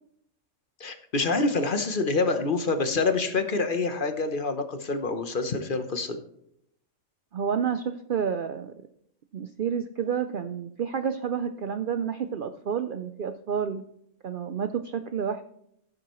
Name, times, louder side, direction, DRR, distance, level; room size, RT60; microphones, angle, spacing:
voice 1, 0.8-6.2, left 3 dB, 45° left, 8 dB, 0.9 m, -26 dB
voice 2, 7.3-8.7 9.3-13.8 14.2-15.4, right 7 dB, 85° right, 9 dB, 0.4 m, -29 dB
15.0 x 7.6 x 3.1 m, 0.74 s
omnidirectional pair, 1.5 m